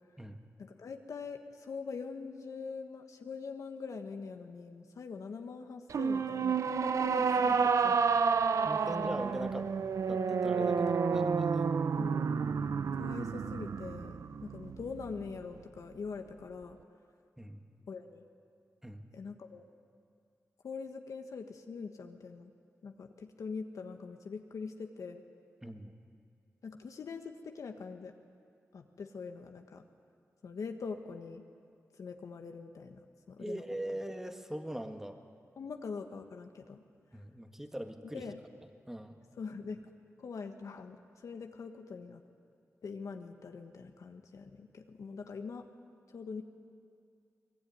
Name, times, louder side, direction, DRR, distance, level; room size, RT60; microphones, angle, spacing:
voice 1, 0.6-8.0 8.8-8.9 12.0-12.3 12.9-16.8 17.9-18.2 19.1-19.7 20.6-22.5 22.8-25.2 26.6-28.1 28.7-29.8 30.4-31.4 32.0-33.6 33.9-34.0 35.6-36.8 38.0-38.4 39.4-39.9 40.2-42.2 42.8-45.7 46.1-46.4, left 5 dB, 85° left, 5 dB, 1.3 m, -43 dB
sound 1, 5.9-15.3, right 5 dB, 75° right, 0.7 m, -30 dB
voice 2, 8.6-9.7 10.1-11.7 17.4-17.7 18.8-19.1 25.6-25.9 33.4-35.2 37.1-38.2 38.9-39.2, right 1 dB, 5° right, 5 dB, 1.7 m, -41 dB
23.0 x 20.5 x 9.4 m, 2.4 s
wide cardioid pair, 80°, 5 cm